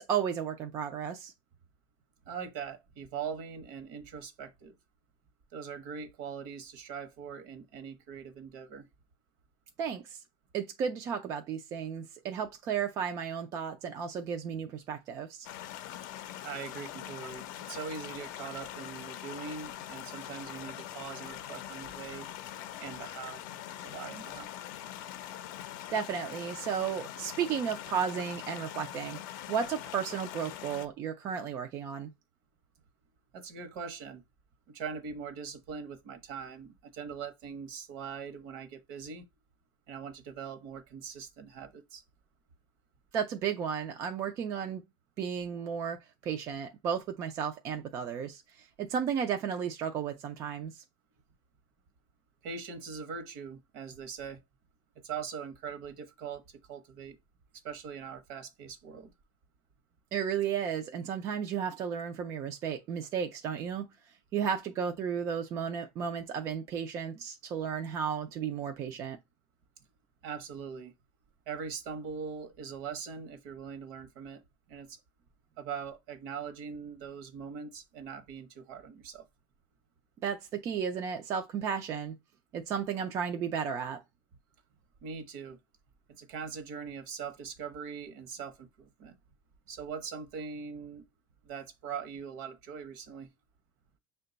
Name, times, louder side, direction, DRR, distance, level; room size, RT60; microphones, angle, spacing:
voice 1, 0.0-1.3 9.8-10.2 10.5-15.5 25.9-29.2 29.5-32.1 43.1-44.8 45.2-50.8 60.1-63.9 64.3-69.2 80.2-82.1 82.5-84.0, right 7 dB, 25° right, 0.3 m, -33 dB
voice 2, 2.3-4.8 5.5-8.9 16.4-22.3 22.8-23.4 23.8-24.5 33.3-34.2 34.7-39.3 39.9-42.0 52.4-54.4 55.0-57.2 57.6-59.1 70.2-70.9 71.5-74.4 74.7-75.0 75.6-79.3 85.0-85.6 86.2-89.2 89.7-91.0 91.4-93.3, right 6 dB, 55° right, 0.8 m, -41 dB
sound 1, 15.4-30.9, left 12 dB, 60° left, 0.5 m, -43 dB
6.3 x 2.2 x 3.8 m
cardioid pair, 175°, 12 cm